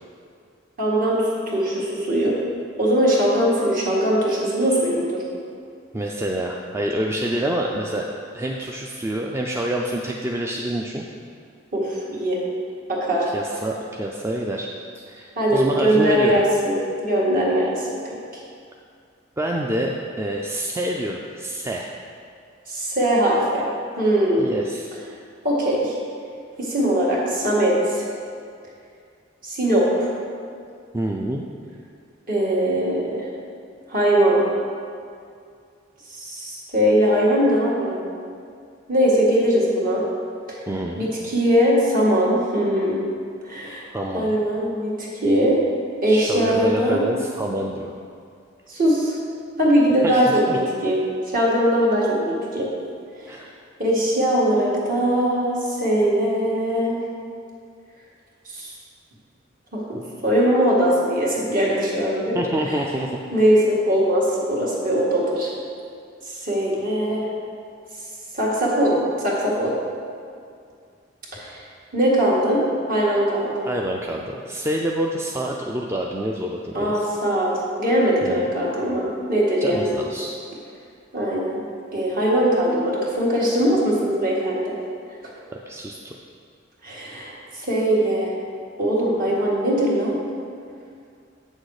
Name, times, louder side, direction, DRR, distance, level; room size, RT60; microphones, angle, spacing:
voice 1, 0.8-2.4 2.8-5.2 11.7-12.4 12.9-13.3 15.4-16.7 17.0-17.9 22.7-23.7 24.0-24.5 25.4-26.0 26.6-28.0 29.4-30.1 32.3-33.3 33.9-34.4 36.1-38.0 38.9-40.0 40.5-40.6 41.0-43.0 43.4-43.8 44.1-45.6 46.0-47.0 48.7-49.2 49.6-51.0 51.3-52.7 53.8-57.0 58.5-58.7 59.7-62.4 63.3-65.5 66.3-67.3 68.3-69.7 71.3-71.6 71.9-72.6 72.9-73.7 76.7-80.0 81.1-81.6 81.9-84.7 86.8-88.3 88.8-90.2, equal, 50° right, -5 dB, 1.9 m, -21 dB
voice 2, 5.9-8.1 8.3-11.1 13.3-14.7 14.9-16.4 19.4-19.9 20.2-21.9 24.4-24.9 30.9-31.4 40.7-41.1 43.9-44.4 46.0-47.9 50.0-50.2 50.5-50.6 53.3-53.5 62.3-63.2 73.6-77.1 78.2-78.5 79.6-80.3 85.7-86.1, right 1 dB, 15° right, 0 dB, 0.4 m, -27 dB
8.1 x 6.5 x 4.8 m, 2.3 s
head